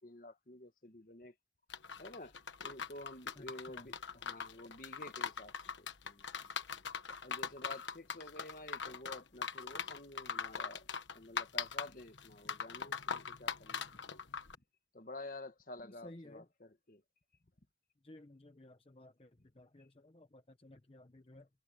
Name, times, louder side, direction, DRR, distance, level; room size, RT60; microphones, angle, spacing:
voice 1, 0.0-1.3 2.0-6.6 7.1-10.9 11.1-14.0 14.9-17.0, left 2 dB, 50° left, 1.6 m, -51 dB
sound 1, 1.7-14.5, left 6 dB, 90° left, 1.3 m, -41 dB
voice 2, 3.4-3.9 15.8-16.5 18.0-21.5, left 1 dB, 30° left, 0.8 m, -56 dB
head